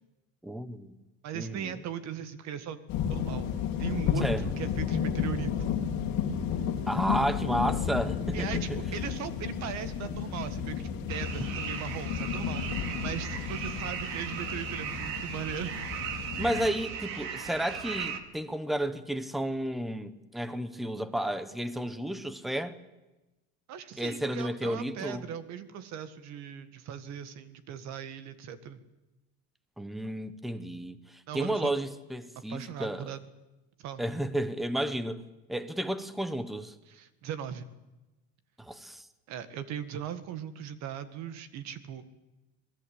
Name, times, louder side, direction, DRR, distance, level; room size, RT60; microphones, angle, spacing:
voice 1, 0.4-0.9 1.3-1.8 4.2-4.4 6.9-8.8 16.4-22.8 24.0-25.2 29.8-33.1 34.0-35.2 35.5-36.7 38.6-39.0, right 1 dB, ahead, 0.9 m, -32 dB
voice 2, 1.2-2.8 3.1-3.5 3.8-5.7 8.3-15.8 23.7-28.8 31.3-31.7 32.5-33.2 33.8-34.0 36.9-37.7 39.3-42.0, right 9 dB, 45° right, 1.9 m, -39 dB
sound 1, 2.9-16.7, left 7 dB, 50° left, 3.3 m, -32 dB
sound 2, 11.1-18.2, right 7 dB, 65° right, 2.5 m, -37 dB
26.5 x 19.5 x 8.5 m
cardioid pair, 170°, 37 cm